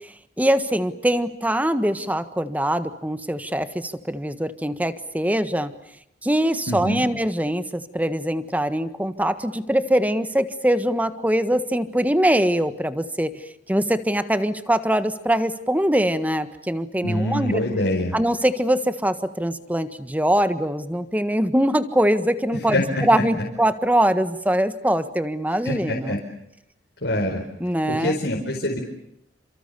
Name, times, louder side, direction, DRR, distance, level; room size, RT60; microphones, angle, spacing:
voice 1, 0.4-5.7 6.2-13.3 13.7-17.6 18.1-26.2 27.6-28.2, right 1 dB, 10° right, 11 dB, 1.5 m, -22 dB
voice 2, 6.7-7.1 17.0-18.1 22.7-23.2 25.6-26.2 27.0-27.4 27.9-28.8, left 1 dB, 80° left, -1 dB, 4.7 m, -24 dB
29.5 x 27.0 x 6.9 m, 0.76 s
head